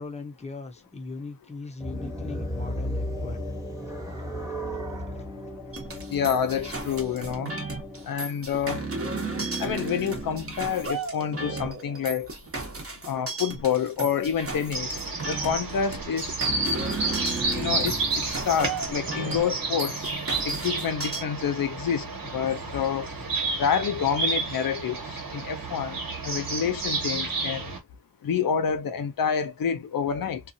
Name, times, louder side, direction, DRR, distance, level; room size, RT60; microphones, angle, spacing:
voice 1, 0.0-3.4 5.1-5.2, left 3 dB, 20° left, 0.6 m, -39 dB
sound 1, 1.8-8.1, equal, 10° right, 1.0 m, -35 dB
sound 2, 5.7-21.2, right 3 dB, 40° right, 0.9 m, -34 dB
voice 2, 6.1-7.5 8.1-8.9 9.6-12.3 13.1-16.4 17.5-20.1 20.4-22.1 22.3-23.1 23.6-26.0 26.2-27.7 28.2-30.4, left 7 dB, 80° left, 0.5 m, -28 dB
sound 3, 14.7-27.8, right 3 dB, 85° right, 1.3 m, -31 dB
2.8 x 2.3 x 2.6 m
wide cardioid pair, 85°, 34 cm